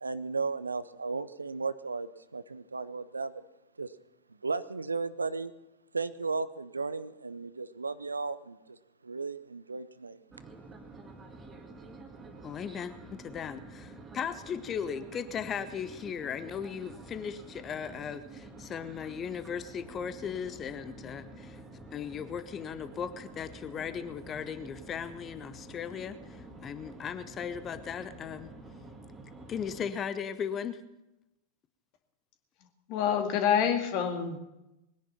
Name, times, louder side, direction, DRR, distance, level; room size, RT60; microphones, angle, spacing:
voice 1, 0.0-3.4 3.8-3.9 4.4-5.5 5.9-8.8 9.0-10.2, right 4 dB, 80° right, 16 dB, 0.6 m, -35 dB
sound 1, 10.3-29.9, right 2 dB, 15° right, 2.2 m, -49 dB
voice 2, 12.4-21.6 21.9-28.5 29.5-30.8, left 7 dB, 25° left, 12 dB, 0.9 m, -37 dB
voice 3, 32.9-34.4, left 8 dB, 45° left, 5 dB, 2.1 m, -27 dB
21.0 x 10.5 x 5.8 m, 0.94 s
figure-of-eight pair, 90°, 0 cm